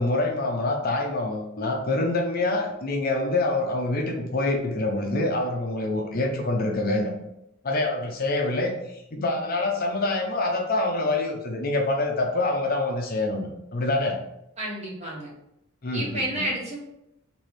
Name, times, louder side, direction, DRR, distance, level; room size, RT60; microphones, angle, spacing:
voice 1, 0.0-7.1 7.6-8.7 9.1-14.2 15.8-16.1, left 2 dB, 45° left, 2 dB, 0.6 m, -26 dB
voice 2, 14.6-15.3 15.9-16.8, right 1 dB, 30° right, -5 dB, 1.3 m, -30 dB
3.2 x 3.0 x 4.3 m, 0.83 s
head